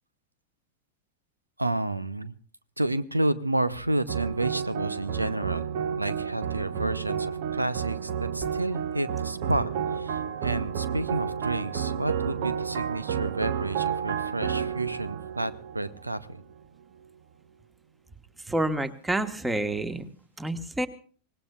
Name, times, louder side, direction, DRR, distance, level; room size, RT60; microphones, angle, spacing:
voice 1, 1.6-2.3 2.8-5.6 6.0-16.4, right 1 dB, 85° right, 17 dB, 0.7 m, -30 dB
sound 1, 4.1-16.6, right 8 dB, 55° right, 1.0 m, -31 dB
voice 2, 18.5-20.0 20.4-20.9, right 1 dB, 10° right, 12 dB, 1.4 m, -28 dB
25.0 x 19.0 x 2.4 m, 0.43 s
figure-of-eight pair, 90°, 0 cm